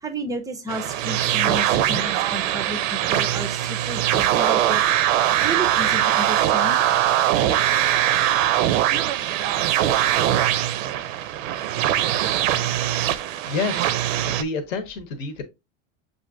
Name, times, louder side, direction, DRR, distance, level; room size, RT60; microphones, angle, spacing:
voice 1, 0.0-4.8 5.4-6.8, right 1 dB, 10° right, 0.3 m, -32 dB
sound 1, 0.7-14.4, right 12 dB, 80° right, 0.5 m, -21 dB
voice 2, 13.4-14.0 14.3-15.4, left 4 dB, 85° left, 0.9 m, -28 dB
6.3 x 2.5 x 2.4 m
supercardioid pair, 115°, 38 cm